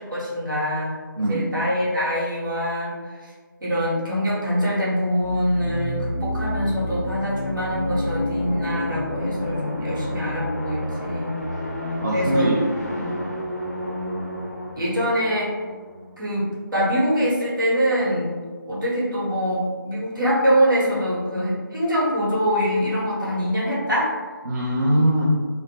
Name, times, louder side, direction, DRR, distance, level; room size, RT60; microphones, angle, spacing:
voice 1, 0.0-1.0 1.3-2.9 3.2-3.3 3.6-11.3 12.1-12.4 14.7-15.5 16.2-16.5 16.7-18.3 18.7-24.1, equal, 65° right, -6 dB, 1.1 m, -24 dB
voice 2, 1.2-1.5 12.0-12.6 12.9-13.2 24.4-25.2, right 1 dB, 50° right, -6 dB, 0.4 m, -22 dB
sound 1, 5.2-16.7, left 1 dB, 40° left, 0.5 m, -30 dB
2.5 x 2.1 x 3.1 m, 1.5 s
figure-of-eight pair, 180°, 12 cm